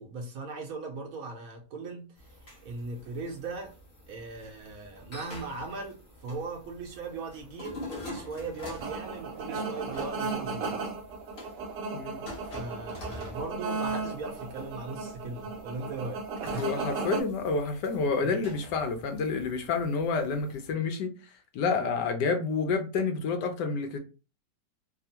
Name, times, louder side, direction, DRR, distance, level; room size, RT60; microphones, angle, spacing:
voice 1, 0.0-3.7 4.1-10.8 12.4-16.7 18.2-18.4 22.2-22.3, right 3 dB, 65° right, 1.0 m, -39 dB
sound 1, 2.2-20.7, left 1 dB, 40° left, 1.0 m, -47 dB
sound 2, 8.8-17.2, right 4 dB, 85° right, 1.2 m, -35 dB
voice 2, 16.6-21.1 21.5-24.0, left 4 dB, 75° left, 1.2 m, -29 dB
3.5 x 2.0 x 2.8 m
omnidirectional pair, 1.9 m